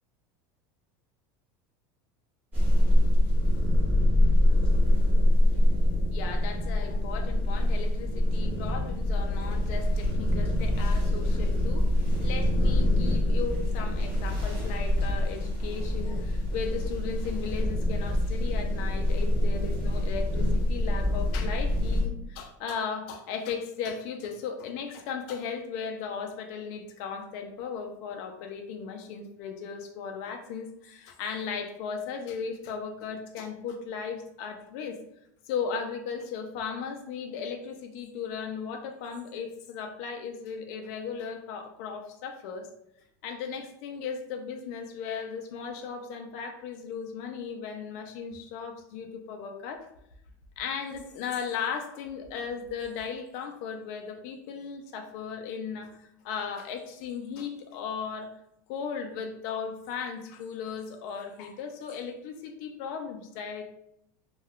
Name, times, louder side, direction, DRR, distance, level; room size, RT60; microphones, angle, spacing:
sound 1, 2.5-22.0, left 1 dB, 15° right, 0.9 m, -25 dB
voice 1, 6.1-35.0 35.5-42.7 43.2-49.9 50.6-58.3 58.7-63.7, left 6 dB, 50° left, 4 dB, 0.3 m, -36 dB
2.2 x 2.1 x 3.5 m, 0.77 s
supercardioid pair, 175°, 10 cm